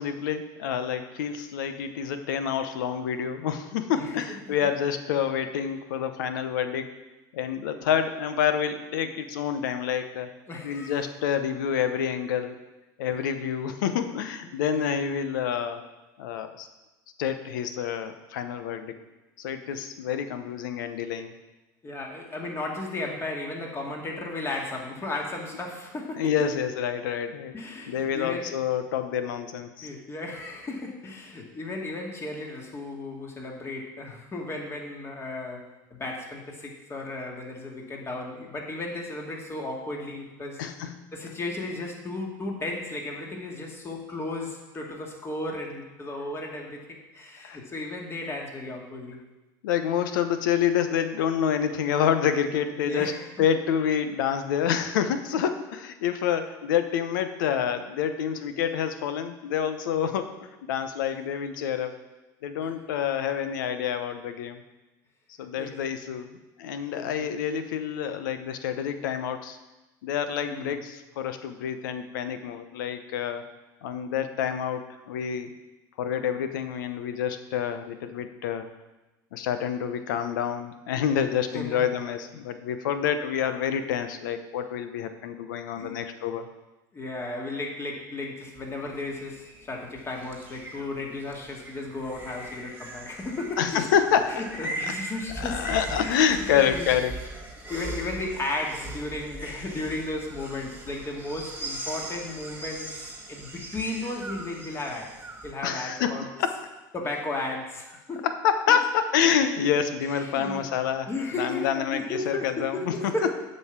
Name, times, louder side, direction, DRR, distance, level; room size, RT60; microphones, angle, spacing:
voice 1, 0.0-6.9 7.3-10.3 10.6-12.6 13.0-15.8 16.2-16.7 17.2-18.9 19.4-21.4 26.2-27.5 27.9-29.9 40.6-41.1 47.4-47.6 49.6-53.1 53.4-61.9 62.4-64.6 65.4-69.6 70.0-73.4 73.8-75.5 76.0-78.7 79.3-86.5 93.6-94.7 95.4-97.1 105.6-106.5 108.2-113.0, left 8 dB, 85° left, 9 dB, 0.9 m, -27 dB
voice 2, 10.5-11.0 14.7-15.0 21.8-26.3 27.5-28.7 29.8-40.6 41.1-49.2 52.8-53.3 62.6-62.7 65.6-66.0 66.8-67.3 70.4-70.8 81.5-81.9 85.8-85.9 86.9-93.9 94.3-95.6 96.0-96.9 97.7-105.1 105.4-106.3 106.9-108.3 108.7-108.8 110.1-110.7 111.1-113.3, left 2 dB, 25° left, 0 dB, 2.2 m, -35 dB
sound 1, 88.6-105.5, right 2 dB, 15° right, 1.9 m, -40 dB
7.9 x 5.5 x 7.3 m, 1.1 s
supercardioid pair, 100°, 10 cm